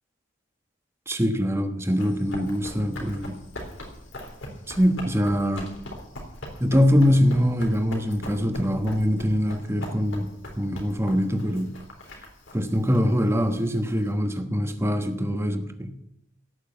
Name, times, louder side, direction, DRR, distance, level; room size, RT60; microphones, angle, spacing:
voice 1, 1.1-3.4 4.7-5.7 6.6-10.3 10.6-11.7 12.5-15.9, equal, 15° right, 7 dB, 1.2 m, -23 dB
Run, 1.8-14.1, left 1 dB, 80° left, 3.6 m, -41 dB
17.0 x 6.5 x 8.9 m, 0.79 s
head